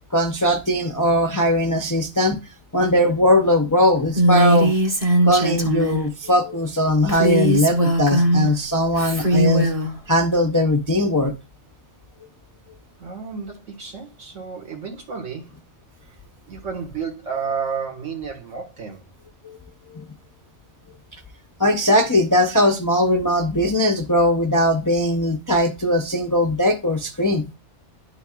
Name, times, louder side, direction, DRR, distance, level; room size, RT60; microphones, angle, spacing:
voice 1, 0.1-2.4 2.7-4.8 5.2-9.7 10.1-11.3 19.4-19.6 19.9-20.0 21.6-27.4, left 1 dB, 30° left, 0.4 m, -19 dB
Female speech woman speaking, 4.1-6.1 7.1-8.5 8.9-9.9, right 1 dB, 30° right, 1.0 m, -19 dB
voice 2, 13.0-15.6 16.0-16.2 16.5-19.1, right 6 dB, 85° right, 1.9 m, -31 dB
10.5 x 4.0 x 2.3 m
omnidirectional pair, 1.3 m